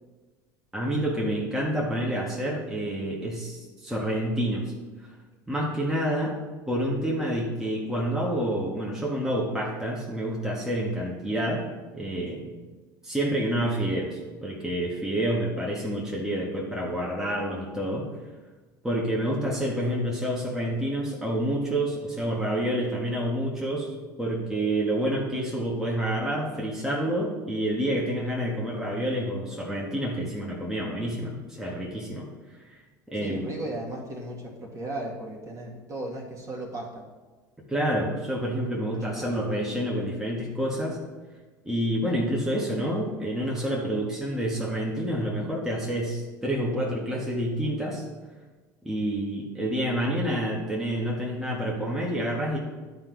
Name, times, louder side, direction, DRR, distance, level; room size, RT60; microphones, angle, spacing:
voice 1, 0.7-4.7 5.5-6.3 6.7-11.6 11.9-12.5 13.0-18.1 18.8-23.9 24.2-32.2 32.7-32.8 33.1-33.5 37.7-41.0 41.6-48.0 48.8-52.6, right 1 dB, 5° right, -4 dB, 1.7 m, -28 dB
voice 2, 33.2-37.0 38.9-39.3, right 1 dB, 30° right, -2 dB, 2.1 m, -36 dB
11.0 x 4.5 x 4.0 m, 1.3 s
hypercardioid pair, 80°, 10 cm